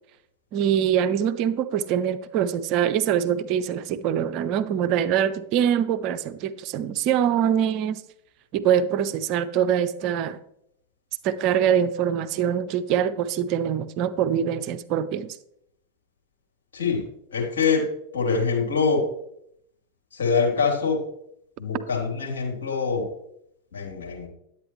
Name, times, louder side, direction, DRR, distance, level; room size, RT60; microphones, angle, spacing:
voice 1, 0.5-8.0 8.5-10.4 11.2-15.3, right 9 dB, 45° right, 0.6 m, -24 dB
voice 2, 16.7-19.1 20.1-21.1 21.6-23.1 23.7-24.3, left 5 dB, 70° left, 3.2 m, -24 dB
10.5 x 8.8 x 3.2 m
figure-of-eight pair, 95°, 0 cm